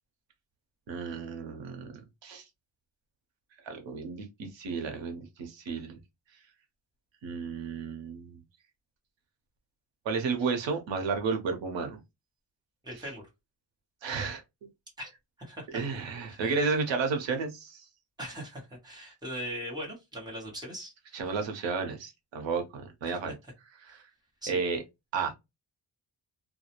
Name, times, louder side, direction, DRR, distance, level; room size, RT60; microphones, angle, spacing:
voice 1, 0.9-2.4 3.6-6.0 7.2-8.4 10.0-12.0 14.0-14.4 15.7-17.9 21.1-23.3 23.8-24.0 24.5-24.8 25.1-25.3, right 5 dB, 80° right, 0.7 m, -32 dB
voice 2, 12.8-13.2 15.0-16.7 18.2-21.2 23.1-23.2 24.4-24.6, equal, 10° right, 0.9 m, -41 dB
2.3 x 2.0 x 2.8 m
wide cardioid pair, 180°, 44 cm